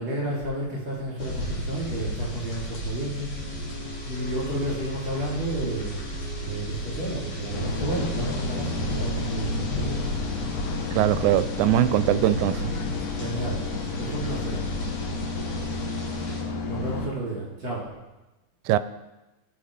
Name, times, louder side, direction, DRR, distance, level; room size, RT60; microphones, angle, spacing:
voice 1, 0.0-3.3 4.1-6.1 6.4-9.9 13.2-13.6 14.0-14.6 16.7-17.9, right 1 dB, 40° right, -5 dB, 4.4 m, -31 dB
sound 1, 1.2-16.4, equal, 50° left, 3.7 m, -33 dB
Resonance of the Gods, 3.4-11.1, right 2 dB, 25° right, 1.9 m, -44 dB
sound 2, 7.5-17.1, left 4 dB, 85° left, 2.5 m, -32 dB
voice 2, 11.0-12.7 18.7-18.8, right 12 dB, 85° right, 14 dB, 2.0 m, -21 dB
17.0 x 6.0 x 5.1 m, 1.0 s
omnidirectional pair, 3.4 m